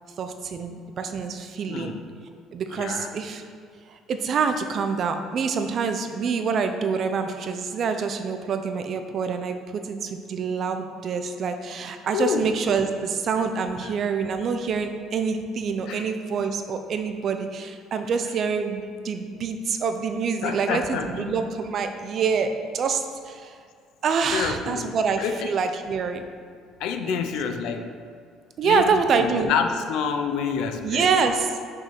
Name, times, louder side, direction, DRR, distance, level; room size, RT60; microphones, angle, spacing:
voice 1, 0.2-1.9 2.5-3.4 3.9-23.6 24.0-26.2 27.1-27.2 28.6-29.5 30.8-31.5, right 5 dB, 45° right, 7 dB, 0.6 m, -26 dB
voice 2, 1.7-2.0 2.7-3.1 12.1-12.6 13.8-13.9 15.9-16.1 20.4-21.4 24.3-25.5 26.8-27.9 28.6-31.1, left 6 dB, 75° left, 6 dB, 0.7 m, -28 dB
6.1 x 5.4 x 6.0 m, 2.1 s
cardioid pair, 130°, 0 cm